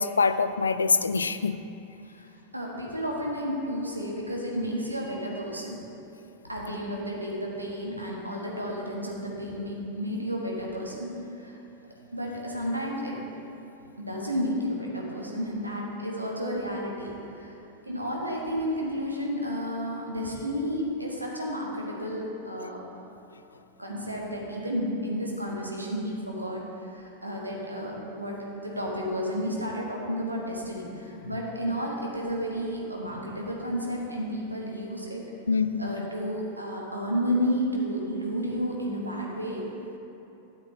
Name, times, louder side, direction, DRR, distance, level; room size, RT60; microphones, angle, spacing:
voice 1, 0.0-1.6 35.5-35.9, left 4 dB, 75° left, 12 dB, 0.3 m, -24 dB
voice 2, 2.5-5.8 6.5-11.6 12.1-13.2 14.0-17.6 17.8-22.8 23.8-35.2 35.8-39.6, equal, 85° right, -3 dB, 1.4 m, -32 dB
12.0 x 7.5 x 3.1 m, 2.8 s
figure-of-eight pair, 90°, 0 cm